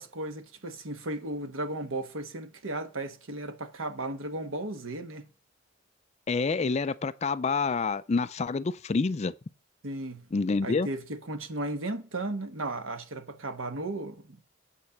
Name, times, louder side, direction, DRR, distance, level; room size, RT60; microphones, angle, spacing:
voice 1, 0.0-5.2 9.8-10.2 10.6-14.3, right 2 dB, 85° right, 1.3 m, -35 dB
voice 2, 6.3-9.3 10.3-10.9, left 4 dB, 35° left, 0.4 m, -27 dB
8.3 x 4.4 x 7.0 m
head